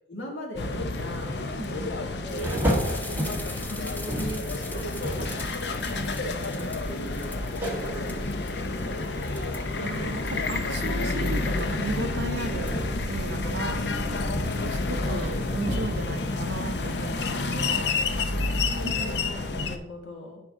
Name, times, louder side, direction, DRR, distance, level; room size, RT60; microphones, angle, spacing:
voice 1, 0.1-2.5 3.1-5.4 6.2-8.3 13.7-14.8 18.1-20.4, equal, 80° left, 0 dB, 2.1 m, -40 dB
sound 1, 0.6-19.8, left 3 dB, 65° left, 0.7 m, -30 dB
voice 2, 1.6-1.9 9.8-13.8 14.7-17.9 18.8-18.9, right 3 dB, 65° right, 10 dB, 0.6 m, -36 dB
sound 2, 2.3-19.3, equal, 10° left, 0.6 m, -39 dB
sound 3, 2.4-18.7, right 1 dB, 10° right, 1.7 m, -35 dB
10.0 x 5.2 x 3.6 m, 0.87 s
head